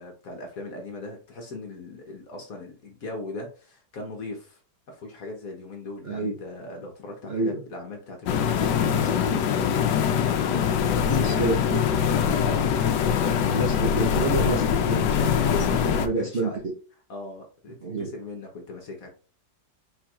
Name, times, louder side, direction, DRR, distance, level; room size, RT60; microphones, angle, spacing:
voice 1, 0.0-4.6 4.9-11.5 12.2-13.6 14.3-14.7 15.2-16.6 17.1-19.1, left 2 dB, 55° left, 2 dB, 1.3 m, -38 dB
voice 2, 6.0-6.3 7.3-7.6 11.1-11.8 13.5-15.5 16.0-16.7 17.8-18.1, right 3 dB, 40° right, -3 dB, 1.0 m, -28 dB
sound 1, 8.3-16.1, left 8 dB, 75° left, 1.2 m, -23 dB
4.5 x 4.3 x 2.4 m, 0.37 s
omnidirectional pair, 2.0 m